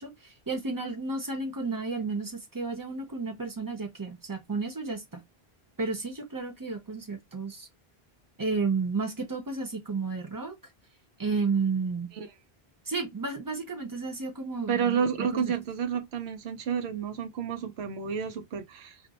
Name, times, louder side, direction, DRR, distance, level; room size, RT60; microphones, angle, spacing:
voice 1, 0.0-5.2 5.8-7.7 8.4-10.6 11.2-12.1 12.9-15.5, right 4 dB, 25° right, 0.7 m, -32 dB
voice 2, 14.7-19.0, right 7 dB, 85° right, 0.9 m, -30 dB
2.5 x 2.0 x 3.9 m
omnidirectional pair, 1.0 m